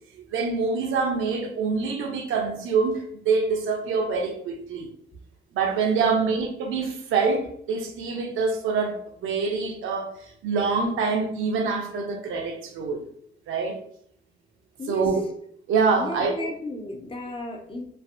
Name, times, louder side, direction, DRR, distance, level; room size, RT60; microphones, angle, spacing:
voice 1, 0.1-4.9 5.5-10.1 10.4-13.0 13.5-13.8 14.9-15.2 15.7-16.3, right 4 dB, 85° right, 0.7 m, -25 dB
voice 2, 5.9-6.4 14.8-15.1 15.9-17.8, left 1 dB, 25° left, 0.8 m, -34 dB
3.2 x 2.5 x 2.5 m
cardioid pair, 90°, 20 cm